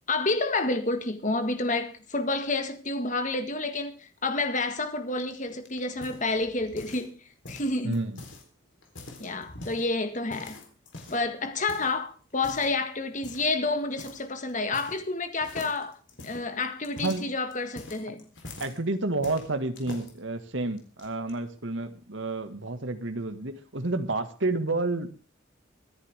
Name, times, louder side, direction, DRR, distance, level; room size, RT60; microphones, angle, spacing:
voice 1, 0.1-7.2 7.5-8.0 9.2-10.6 11.1-16.0 16.2-18.3, left 3 dB, 40° left, 1.8 m, -29 dB
sound 1, 5.2-7.1 7.4-8.4 8.8-9.9 10.3-11.3 11.7-11.9 12.4-12.8 13.2-13.5 14.0-14.2 14.5-15.1 15.4-18.8 19.2-20.1 20.8-21.3, left 2 dB, 65° left, 3.9 m, -44 dB
voice 2, 7.8-8.2 17.0-17.3 18.6-25.1, right 2 dB, 70° right, 1.8 m, -30 dB
24.0 x 10.5 x 3.6 m
head